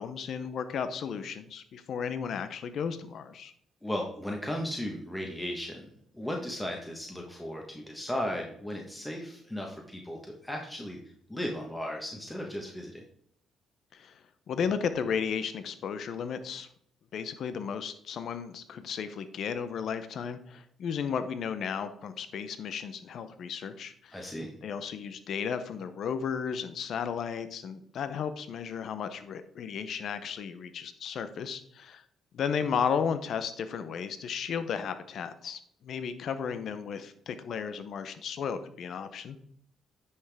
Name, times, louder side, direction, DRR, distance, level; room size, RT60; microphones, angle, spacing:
voice 1, 0.0-3.5 13.9-16.7 17.1-24.3 24.6-32.0 32.3-39.4, left 7 dB, 65° left, 11 dB, 0.7 m, -34 dB
voice 2, 3.8-5.9 6.1-11.0 11.3-13.0 24.1-24.5, left 1 dB, 10° left, 1 dB, 1.3 m, -36 dB
9.5 x 5.8 x 3.5 m, 0.67 s
cardioid pair, 90°, 0 cm